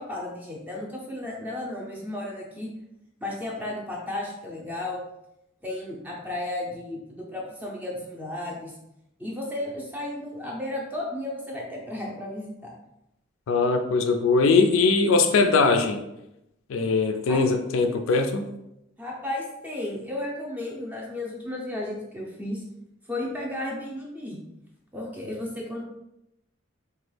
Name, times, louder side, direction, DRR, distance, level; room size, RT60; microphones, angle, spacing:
voice 1, 0.0-2.7 3.2-5.0 5.6-8.7 9.2-12.7 17.3-17.4 19.0-22.6 23.1-24.4 24.9-25.8, left 1 dB, 10° right, -2 dB, 0.6 m, -33 dB
voice 2, 13.5-16.0 16.7-18.5, left 4 dB, 70° left, 5 dB, 0.3 m, -21 dB
2.9 x 2.3 x 3.2 m, 0.86 s
head